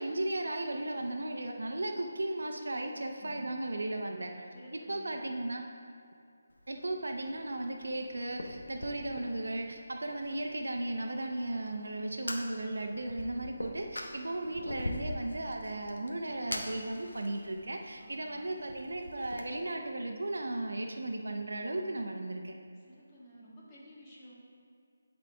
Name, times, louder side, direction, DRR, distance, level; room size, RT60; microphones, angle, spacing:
voice 1, 0.0-4.5 4.9-5.7 6.7-22.6, right 1 dB, 80° right, 3 dB, 0.7 m, -36 dB
voice 2, 4.5-5.1 18.0-18.5 22.8-24.3, equal, 20° left, -7 dB, 1.6 m, -52 dB
Fire, 6.5-19.4, left 1 dB, 85° left, 0.9 m, -44 dB
12.0 x 4.0 x 3.4 m, 2.4 s
figure-of-eight pair, 160°, 0 cm